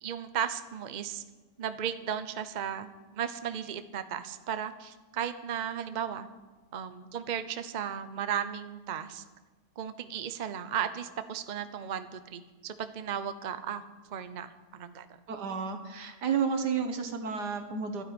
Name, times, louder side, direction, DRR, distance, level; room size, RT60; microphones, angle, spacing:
voice 1, 0.0-1.2 1.6-6.3 6.7-9.2 9.8-13.8 14.1-15.1, right 8 dB, 40° right, 11 dB, 0.6 m, -35 dB
voice 2, 15.3-18.0, right 6 dB, 85° right, 6 dB, 2.1 m, -31 dB
12.5 x 9.4 x 9.9 m, 1.3 s
omnidirectional pair, 1.7 m